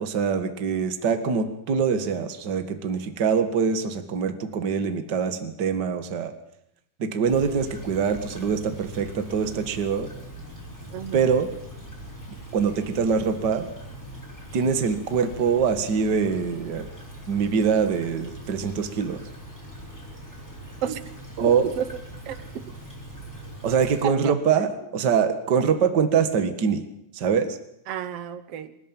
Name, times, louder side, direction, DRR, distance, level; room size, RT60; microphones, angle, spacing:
voice 1, 0.0-6.3 7.0-10.1 11.1-11.5 12.5-13.7 14.5-16.9 17.3-19.2 21.4-21.7 23.6-26.8 27.1-27.6, right 6 dB, 40° right, 9 dB, 1.7 m, -24 dB
Stream / Trickle dribble, 7.3-24.0, right 1 dB, 5° left, 5.6 m, -41 dB
voice 2, 10.9-11.3 20.8-21.0 21.4-21.9 22.2-22.7 24.0-24.3 27.9-28.8, right 10 dB, 65° right, 13 dB, 1.5 m, -32 dB
26.0 x 13.5 x 9.1 m, 0.81 s
omnidirectional pair, 4.2 m